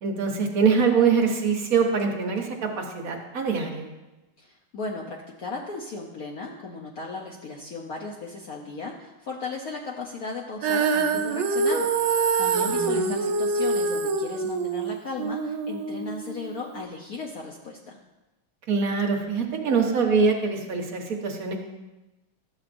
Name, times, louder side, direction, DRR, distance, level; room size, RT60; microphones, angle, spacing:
voice 1, 0.0-3.9 12.5-13.2 18.7-21.6, right 5 dB, 55° right, 1 dB, 1.2 m, -24 dB
voice 2, 4.4-11.9 12.4-18.0, left 3 dB, 65° left, -1 dB, 0.9 m, -36 dB
Female singing, 10.6-16.8, right 4 dB, 70° right, 1.4 m, -25 dB
12.0 x 7.1 x 2.5 m, 1.0 s
omnidirectional pair, 2.3 m